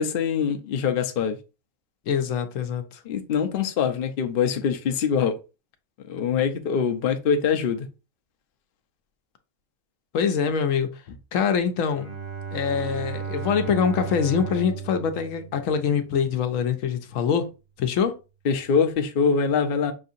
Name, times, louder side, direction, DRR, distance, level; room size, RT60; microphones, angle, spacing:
voice 1, 0.0-1.4 3.1-5.4 6.1-7.9 18.4-19.9, left 6 dB, 55° left, 0.6 m, -23 dB
voice 2, 2.1-3.0 10.1-11.0 11.3-12.1 12.5-17.5 17.8-18.2, left 7 dB, 75° left, 1.0 m, -24 dB
Bowed string instrument, 11.8-16.2, right 6 dB, 85° right, 2.0 m, -34 dB
6.1 x 2.7 x 2.5 m
omnidirectional pair, 1.4 m